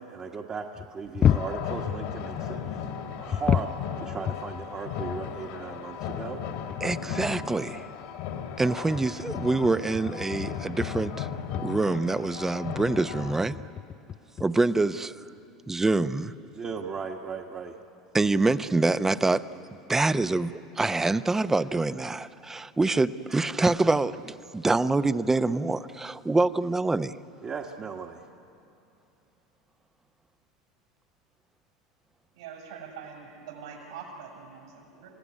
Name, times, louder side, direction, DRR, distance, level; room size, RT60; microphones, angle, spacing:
voice 1, 0.0-2.9 3.2-6.4 16.5-17.8 27.4-28.2, right 5 dB, 30° right, 1 dB, 1.5 m, -37 dB
sound 1, 0.8-2.3 3.3-5.4 5.7-5.8 6.3-6.4 6.7-7.3 8.7-11.3 11.5-11.8 13.1-14.5 15.7-15.8 16.0-16.2, left 9 dB, 35° left, 0.5 m, -30 dB
sound 2, 1.2-13.4, left 8 dB, 65° left, 2.4 m, -36 dB
voice 2, 6.8-7.9 8.6-11.3 11.6-13.6 14.4-15.1 15.7-16.3 18.1-19.4 19.9-27.2, right 3 dB, 15° right, 13 dB, 0.8 m, -25 dB
voice 3, 32.3-35.1, right 6 dB, 75° right, 0 dB, 7.0 m, -43 dB
29.0 x 16.5 x 9.8 m, 2.8 s
hypercardioid pair, 80°, 3 cm